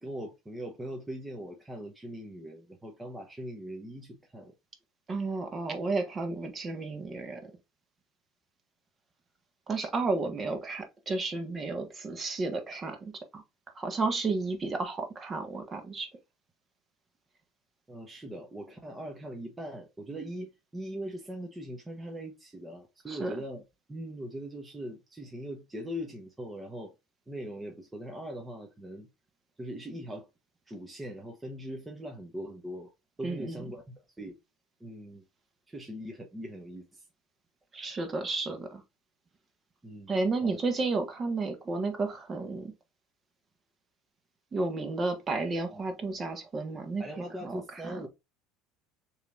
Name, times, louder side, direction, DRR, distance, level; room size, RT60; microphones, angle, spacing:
voice 1, 0.0-4.5 17.9-23.6 23.9-26.9 27.3-29.1 29.6-30.3 30.7-32.9 33.2-34.3 34.8-35.2 35.7-37.0 39.8-40.1 40.4-40.6 47.0-48.1, equal, 15° right, 1.0 m, -41 dB
voice 2, 5.1-7.5 9.7-13.4 13.7-16.1 23.1-23.3 33.2-33.6 37.7-38.8 40.1-42.7 44.5-48.0, right 3 dB, 30° right, 1.4 m, -32 dB
6.6 x 3.1 x 2.5 m
supercardioid pair, 105°, 0 cm